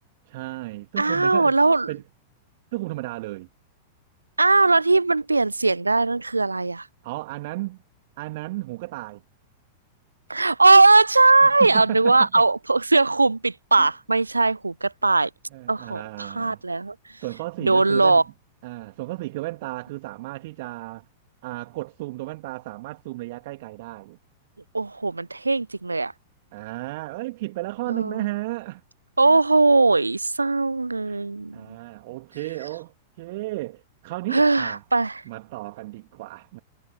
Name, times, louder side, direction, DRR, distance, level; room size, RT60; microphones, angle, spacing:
voice 1, 0.3-1.5 1.9-2.0 2.7-3.5 7.0-7.8 8.2-9.2 11.4-12.4 13.8-13.9 15.5-16.6 17.2-18.2 18.6-21.0 21.4-24.2 26.5-28.8 31.1-31.2 31.5-34.8 35.2-36.6, right 20 dB, 50° right, 2.7 m, -34 dB
voice 2, 1.0-1.9 4.4-6.9 10.3-15.3 15.7-16.9 17.6-18.2 24.7-26.1 27.9-28.3 29.2-31.8 34.3-35.2, right 3 dB, 80° right, 0.4 m, -19 dB
figure-of-eight pair, 95°, 0 cm